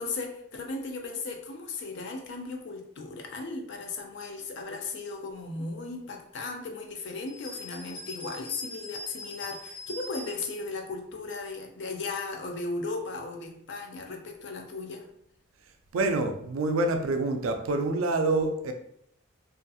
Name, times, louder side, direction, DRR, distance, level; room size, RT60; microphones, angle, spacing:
voice 1, 0.0-15.1, left 3 dB, 55° left, 4 dB, 0.4 m, -36 dB
sound 1, 7.3-10.6, left 1 dB, 75° left, 0.8 m, -42 dB
voice 2, 15.9-18.7, right 2 dB, 75° right, 6 dB, 0.3 m, -26 dB
2.6 x 2.4 x 2.3 m, 0.70 s
head